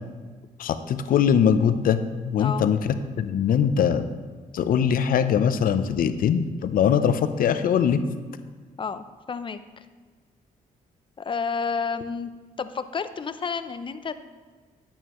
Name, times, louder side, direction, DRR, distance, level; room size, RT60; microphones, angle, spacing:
voice 1, 0.6-4.1 4.5-8.0, left 8 dB, 70° left, 10 dB, 0.7 m, -22 dB
voice 2, 8.8-9.8 11.2-12.3 12.6-14.1, left 5 dB, 35° left, 11 dB, 0.6 m, -30 dB
11.0 x 8.9 x 3.1 m, 1.5 s
cardioid pair, 85°, 15 cm